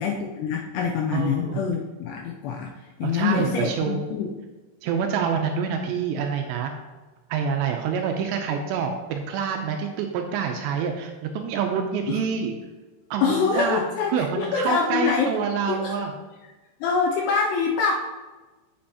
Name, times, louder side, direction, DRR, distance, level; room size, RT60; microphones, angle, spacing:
voice 1, 0.0-2.7 3.0-4.3 12.1-12.2 13.2-15.3 15.7-15.9 16.8-17.9, left 5 dB, 80° left, 1 dB, 2.4 m, -25 dB
voice 2, 1.1-1.7 3.0-4.0 4.8-6.7 7.3-12.5 13.1-13.8 14.1-16.1, right 6 dB, 80° right, 4 dB, 2.6 m, -27 dB
8.6 x 7.6 x 2.8 m, 1.2 s
omnidirectional pair, 5.4 m